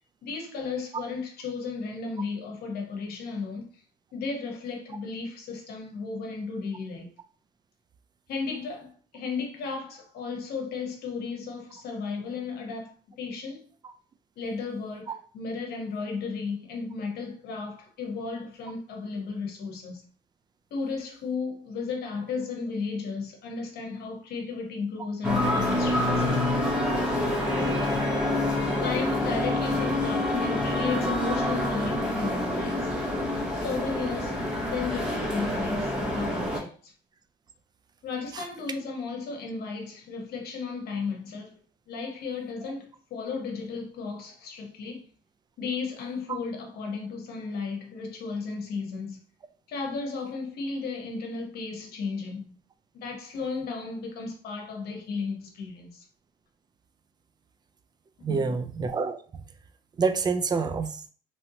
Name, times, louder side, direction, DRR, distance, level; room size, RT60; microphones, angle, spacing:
voice 1, 0.2-3.7 4.1-7.1 8.3-13.6 14.4-20.0 20.7-26.2 28.7-32.9 33.5-36.9 38.0-41.6 41.9-45.0 45.6-49.2 49.7-52.5 52.9-56.0 58.2-58.6, left 4 dB, 70° left, 1.0 m, -34 dB
sound 1, 25.2-36.6, left 1 dB, 5° right, 0.9 m, -27 dB
voice 2, 58.2-59.4 60.0-61.0, right 4 dB, 25° right, 0.4 m, -28 dB
3.1 x 2.7 x 2.7 m
cardioid pair, 110°, 17 cm